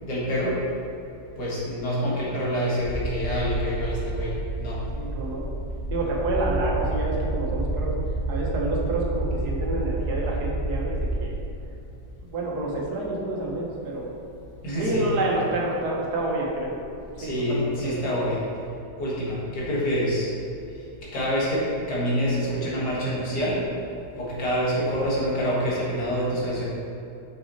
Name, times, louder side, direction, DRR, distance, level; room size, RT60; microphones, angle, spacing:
voice 1, 0.0-0.6 1.4-4.8 14.6-15.1 17.2-18.4 19.0-20.3 21.1-23.6 24.1-26.6, equal, 75° left, -6 dB, 2.3 m, -26 dB
sound 1, 2.8-11.5 12.7-12.8 14.9-15.0 15.3-17.8, right 2 dB, 60° left, 1.6 m, -29 dB
voice 2, 4.9-5.5 5.9-7.9 8.3-11.4 12.2-14.1 14.8-16.7 17.2-18.3, right 2 dB, 70° right, -2 dB, 1.6 m, -28 dB
6.2 x 6.0 x 4.2 m, 2.7 s
omnidirectional pair, 1.8 m